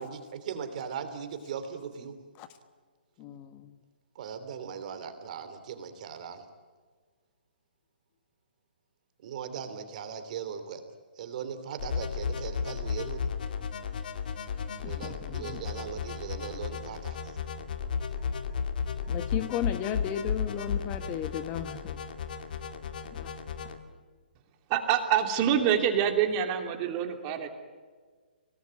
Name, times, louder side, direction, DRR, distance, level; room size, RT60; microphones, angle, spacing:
voice 1, 0.0-2.1 4.1-6.4 9.2-10.8 11.2-13.3 14.8-17.4, right 7 dB, 45° right, 3.1 m, -39 dB
voice 2, 3.2-3.8 14.6-15.6 19.1-22.0 23.1-23.3, left 10 dB, 25° left, 1.2 m, -35 dB
sound 1, 11.8-23.8, left 6 dB, 55° left, 2.2 m, -34 dB
voice 3, 24.7-27.5, right 9 dB, 30° right, 2.9 m, -26 dB
26.0 x 18.5 x 9.5 m
hypercardioid pair, 140°, 6 cm